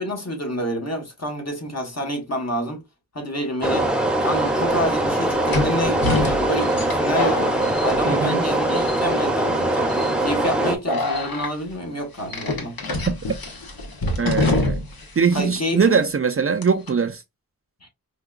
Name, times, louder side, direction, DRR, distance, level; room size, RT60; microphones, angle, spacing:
voice 1, 0.0-2.8 3.1-3.9 4.2-7.5 7.8-12.7 15.3-16.0 17.8-17.9, equal, 45° left, 1.2 m, -28 dB
sound 1, 3.6-10.8, right 1 dB, 5° right, 0.8 m, -22 dB
sound 2, 4.1-4.2 5.5-8.5 8.7-9.3 9.9-10.1 10.9-11.5 12.3-15.0 15.3-15.4 16.6-16.9, left 2 dB, 80° left, 1.0 m, -25 dB
voice 2, 8.1-8.4 14.2-14.9 15.2-17.2, right 6 dB, 40° right, 0.4 m, -21 dB
4.6 x 2.3 x 2.3 m
wide cardioid pair, 55°, 35 cm